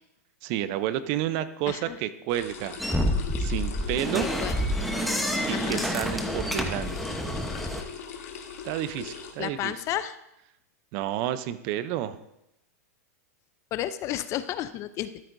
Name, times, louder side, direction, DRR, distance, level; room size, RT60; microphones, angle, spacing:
voice 1, 0.4-2.8 3.4-4.3 5.5-7.2 8.6-9.7 10.9-12.2, right 12 dB, 45° right, 13 dB, 0.6 m, -30 dB
voice 2, 1.7-2.0 4.4-4.6 5.5-5.9 9.4-10.2 13.7-15.1, left 12 dB, 35° left, 13 dB, 0.4 m, -32 dB
sound 1, 2.3-9.3, left 7 dB, 65° left, 1.5 m, -40 dB
sound 2, 2.8-7.8, equal, ahead, 0.9 m, -28 dB
13.0 x 7.9 x 2.6 m, 0.84 s
hypercardioid pair, 120°, 9 cm